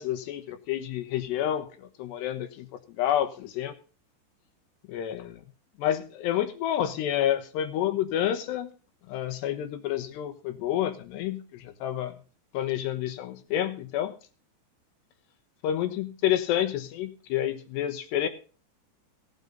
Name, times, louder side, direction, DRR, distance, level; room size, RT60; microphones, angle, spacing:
voice 1, 0.0-2.7 3.0-3.7 4.9-5.4 5.8-8.7 9.1-12.2 12.5-14.1 15.6-18.3, left 11 dB, 75° left, 9 dB, 3.3 m, -29 dB
17.0 x 9.3 x 4.0 m, 0.36 s
omnidirectional pair, 5.1 m